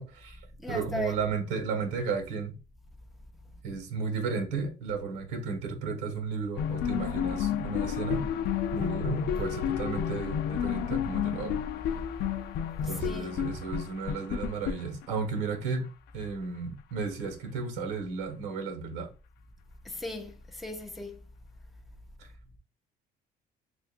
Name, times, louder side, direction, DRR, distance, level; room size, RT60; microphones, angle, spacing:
voice 1, 0.0-2.6 3.6-8.3 8.7-11.6 12.8-15.9 16.1-19.1 22.2-22.3, right 5 dB, 90° right, 1.4 m, -34 dB
voice 2, 0.6-1.2 12.8-13.4 19.8-21.2, left 2 dB, ahead, 0.6 m, -38 dB
sound 1, 6.6-15.4, left 9 dB, 70° left, 0.5 m, -31 dB
6.6 x 2.6 x 2.5 m
cardioid pair, 110°, 17 cm